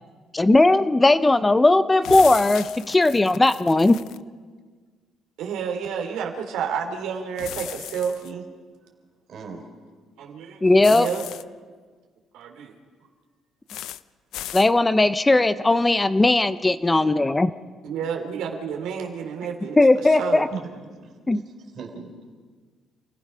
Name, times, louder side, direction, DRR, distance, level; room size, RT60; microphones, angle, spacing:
voice 1, 0.3-4.0 10.6-11.1 14.5-17.5 19.8-20.5 21.3-21.4, left 2 dB, 15° left, 13 dB, 0.6 m, -18 dB
sound 1, 2.0-4.2 7.4-8.3 10.8-11.4 13.7-14.0 14.3-14.7, left 12 dB, 80° left, 0.5 m, -36 dB
voice 2, 5.4-8.4 10.2-10.6 10.9-11.2 12.3-12.7 17.8-20.5, right 7 dB, 90° right, 2 dB, 2.9 m, -30 dB
voice 3, 9.3-9.6 20.3-21.4 21.7-22.2, right 5 dB, 50° right, 3 dB, 4.1 m, -39 dB
29.0 x 16.0 x 5.7 m, 1.5 s
cardioid pair, 125°, 0 cm